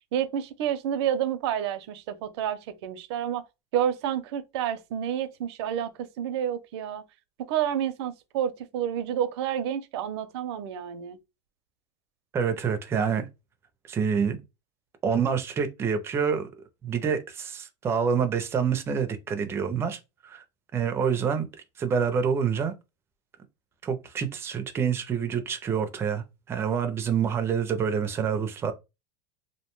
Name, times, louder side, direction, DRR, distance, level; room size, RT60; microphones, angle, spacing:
voice 1, 0.1-3.4 3.7-7.0 7.5-11.2, right 10 dB, 80° right, 0.5 m, -29 dB
voice 2, 12.3-13.3 13.9-14.4 15.0-16.5 16.8-20.4 20.7-21.5 21.8-22.7 23.8-28.7, right 7 dB, 20° right, 0.4 m, -27 dB
2.5 x 2.1 x 3.0 m
supercardioid pair, 160°, 14 cm